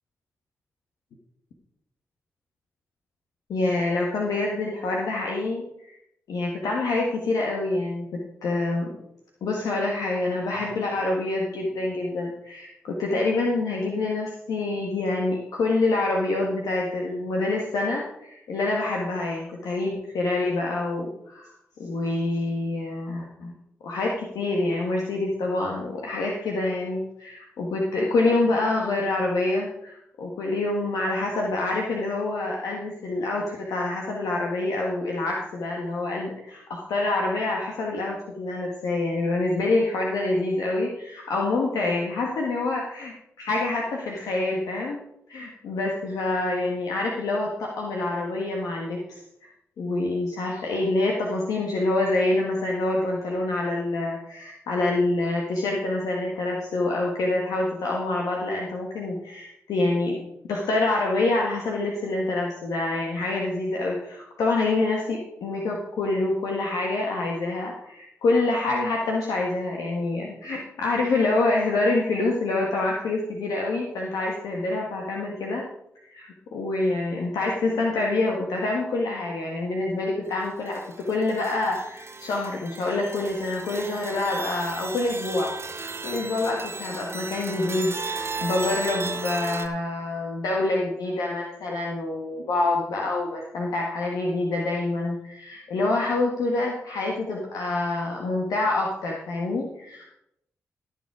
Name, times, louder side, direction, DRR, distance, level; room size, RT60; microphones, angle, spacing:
voice 1, 3.5-5.9 6.3-8.9 9.4-21.5 21.8-23.5 23.8-45.0 45.3-49.2 49.8-60.2 60.5-75.6 76.0-100.0, left 2 dB, 80° left, -1 dB, 1.5 m, -26 dB
sound 1, 80.8-89.7, right 4 dB, 45° right, 1.8 m, -35 dB
14.5 x 7.1 x 4.8 m, 0.80 s
supercardioid pair, 40°, 6 cm